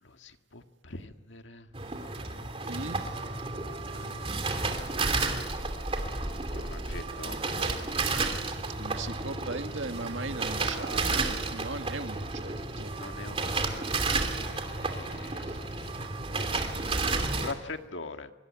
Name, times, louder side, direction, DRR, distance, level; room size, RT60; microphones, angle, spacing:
voice 1, 0.0-1.7 3.7-5.1 6.5-7.4 12.9-13.8 14.4-16.1 17.4-18.3, left 3 dB, 80° left, 7 dB, 1.8 m, -43 dB
sound 1, 1.7-17.5, right 3 dB, 30° right, 2.9 m, -32 dB
voice 2, 2.7-3.0 8.8-12.9, right 3 dB, 85° right, 7 dB, 2.0 m, -38 dB
25.0 x 24.5 x 9.6 m, 1.1 s
head